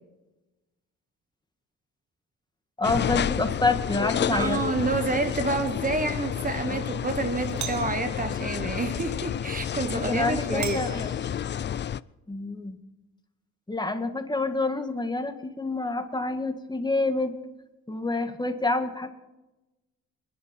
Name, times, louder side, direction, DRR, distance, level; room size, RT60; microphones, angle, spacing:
sound 1, 2.8-12.0, left 9 dB, 35° left, 0.4 m, -30 dB
voice 1, 2.8-4.6 6.7-6.8 9.9-11.1 12.3-12.8 13.7-17.3 17.9-19.1, left 3 dB, 15° left, 7 dB, 1.8 m, -27 dB
voice 2, 4.2-10.8, right 3 dB, 30° right, 9 dB, 1.2 m, -29 dB
Doorbell, 4.5-4.9 7.5-8.1 10.6-11.7, right 10 dB, 65° right, 1.1 m, -39 dB
27.0 x 10.5 x 4.5 m, 1.1 s
cardioid pair, 90°, 30 cm